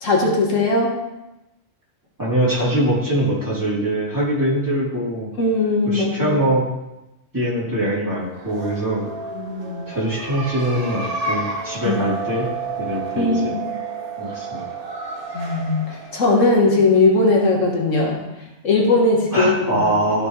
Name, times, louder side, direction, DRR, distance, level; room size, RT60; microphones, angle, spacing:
voice 1, 0.0-0.9 5.4-6.4 9.3-9.8 11.9-12.0 13.2-13.6 15.3-18.2 18.6-19.8, left 2 dB, 85° left, -1 dB, 1.9 m, -19 dB
voice 2, 2.2-5.3 5.8-6.6 7.3-9.0 9.9-12.5 12.8-13.5 14.2-14.7 19.3-20.3, right 1 dB, 15° right, -8 dB, 3.3 m, -22 dB
sound 1, 8.3-17.8, right 3 dB, 45° right, 1.5 m, -31 dB
14.0 x 5.9 x 3.3 m, 0.97 s
omnidirectional pair, 1.3 m